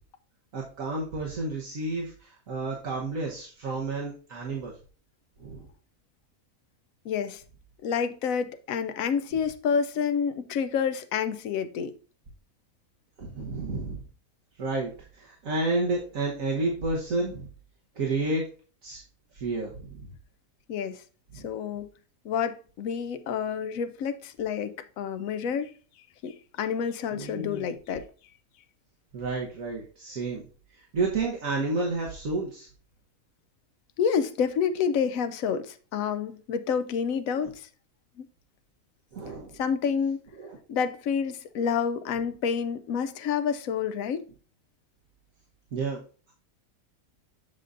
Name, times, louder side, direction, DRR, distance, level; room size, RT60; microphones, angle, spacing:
voice 1, 0.5-4.7 5.4-5.7 13.2-14.0 14.6-17.5 17.9-18.4 18.8-19.0 19.3-20.1 21.3-21.5 27.1-27.6 29.1-30.4 30.7-32.7 39.1-39.6 40.4-40.6 45.7-46.0, right 2 dB, 65° right, 1.5 m, -31 dB
voice 2, 7.0-7.4 7.8-11.9 20.7-21.0 21.4-21.9 22.2-25.7 26.2-28.1 34.0-37.7 38.2-38.3 39.6-40.2 40.7-44.2, left 7 dB, 70° left, 1.0 m, -28 dB
7.5 x 6.7 x 2.5 m
omnidirectional pair, 1.5 m